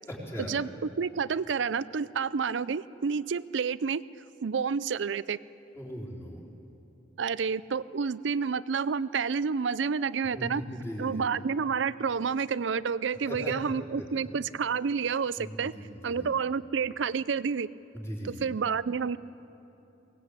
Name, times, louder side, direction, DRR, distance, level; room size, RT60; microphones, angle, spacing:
voice 1, 0.1-0.6 5.8-6.5 10.3-11.3 13.3-14.3 15.4-16.3 17.9-18.5, equal, 15° left, -5 dB, 4.2 m, -39 dB
voice 2, 1.0-4.0 4.4-5.4 7.2-10.6 11.0-15.7 16.0-17.7 18.2-19.2, right 6 dB, 70° right, 17 dB, 0.5 m, -29 dB
22.5 x 18.5 x 8.2 m, 3.0 s
head